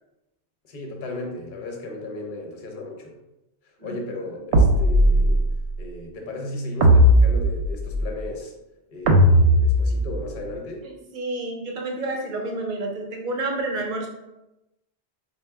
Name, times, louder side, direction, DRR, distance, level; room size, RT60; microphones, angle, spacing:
voice 1, 0.7-3.2 3.8-5.5 5.8-8.5 8.9-10.9, left 2 dB, 50° left, 2 dB, 0.8 m, -35 dB
sound 1, 4.5-5.6 6.8-8.1 9.1-10.3, equal, 80° right, 0.9 m, -17 dB
voice 2, 10.8-14.1, right 2 dB, 50° right, 1 dB, 0.8 m, -29 dB
4.3 x 2.2 x 3.3 m, 0.92 s
omnidirectional pair, 1.2 m